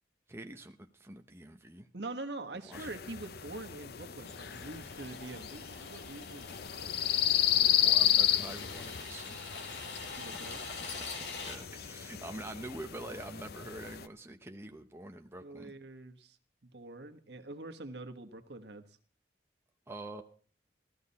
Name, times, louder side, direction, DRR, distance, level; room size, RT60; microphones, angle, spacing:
voice 1, 0.3-1.9 2.7-2.9 7.8-9.4 10.4-15.7 19.9-20.2, right 2 dB, 15° right, 4 dB, 0.9 m, -46 dB
voice 2, 1.9-6.5 6.8-6.9 10.1-10.6 15.4-16.4 16.6-18.8, right 2 dB, 70° right, 6 dB, 1.4 m, -44 dB
sound 1, 2.7-14.1, left 11 dB, 60° left, 0.5 m, -33 dB
sound 2, 4.3-11.6, left 4 dB, 75° left, 2.7 m, -45 dB
16.5 x 13.5 x 4.2 m, 0.41 s
head